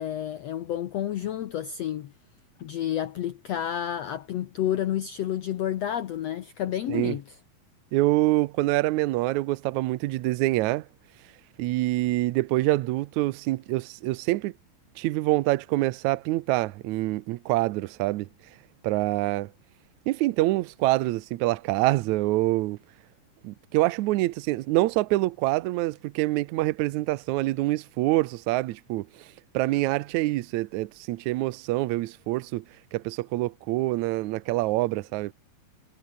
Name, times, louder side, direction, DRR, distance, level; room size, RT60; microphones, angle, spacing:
voice 1, 0.0-2.1 2.6-7.2, left 11 dB, 75° left, 1.5 m, -30 dB
voice 2, 7.9-10.9 11.6-14.5 15.0-18.3 18.8-19.5 20.1-22.8 23.4-29.3 29.5-32.6 32.9-35.3, right 18 dB, 90° right, 1.6 m, -26 dB
omnidirectional pair, 4.2 m